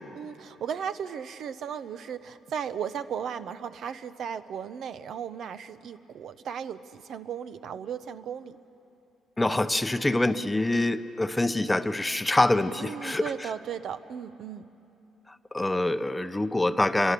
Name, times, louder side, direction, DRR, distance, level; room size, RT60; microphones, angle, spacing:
voice 1, 0.1-8.6 12.8-14.7, right 8 dB, 65° right, 11 dB, 0.8 m, -36 dB
voice 2, 9.4-13.5 15.3-17.1, left 2 dB, 10° left, 11 dB, 0.7 m, -25 dB
28.0 x 23.0 x 6.9 m, 2.9 s
cardioid pair, 100°, 0 cm